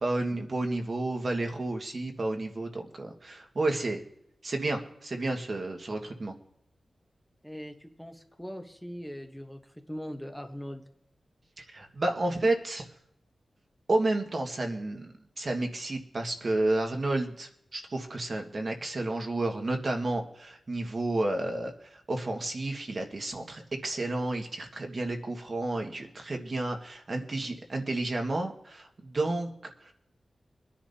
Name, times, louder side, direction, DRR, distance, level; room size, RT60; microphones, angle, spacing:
voice 1, 0.0-4.0 4.4-6.3 11.6-12.9 13.9-29.9, right 2 dB, 45° right, 3 dB, 1.6 m, -31 dB
voice 2, 7.4-10.8, equal, 5° left, 4 dB, 1.0 m, -41 dB
24.0 x 10.5 x 2.8 m, 0.76 s
wide cardioid pair, 145°, 0 cm